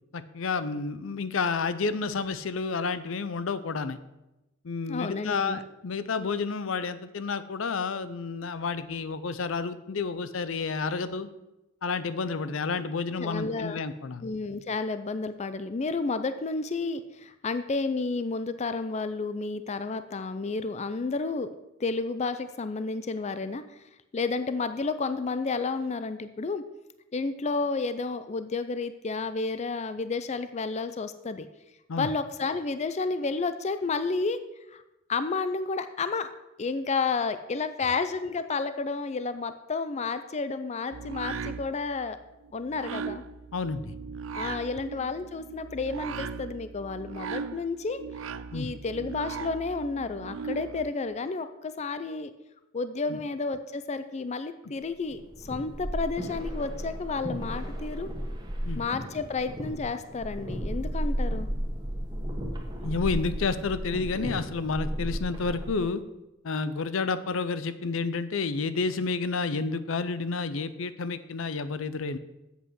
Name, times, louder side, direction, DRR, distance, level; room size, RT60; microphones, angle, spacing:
voice 1, 0.1-4.0 4.6-11.3 11.8-14.3 31.9-32.1 43.5-43.9 48.5-48.7 53.1-53.2 58.7-58.8 62.8-66.0 66.4-72.2, left 4 dB, 75° left, 13 dB, 0.6 m, -30 dB
voice 2, 4.9-5.6 13.2-13.8 14.2-21.5 21.8-23.8 24.1-26.6 27.1-31.5 32.0-34.4 34.7-34.8 35.1-36.3 36.6-42.2 42.5-43.2 44.3-48.0 48.5-52.3 52.7-58.1 58.8-61.5, left 4 dB, 35° left, 11 dB, 0.4 m, -31 dB
sound 1, 40.9-50.9, right 6 dB, 80° right, 0.5 m, -38 dB
sound 2, 55.1-65.9, equal, 20° right, 1.4 m, -34 dB
8.1 x 7.9 x 6.3 m, 0.96 s
head